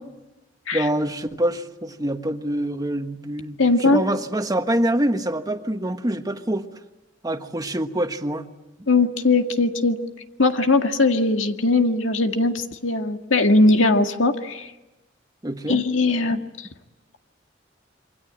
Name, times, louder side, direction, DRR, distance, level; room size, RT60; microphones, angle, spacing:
voice 1, 0.7-6.7 7.2-8.5 15.4-15.8 16.3-16.4, right 1 dB, 20° right, 7 dB, 1.4 m, -25 dB
voice 2, 3.6-4.0 8.9-10.0 10.4-14.7 15.7-16.4, left 2 dB, 85° left, 5 dB, 1.9 m, -19 dB
27.0 x 24.5 x 8.8 m, 1.0 s
head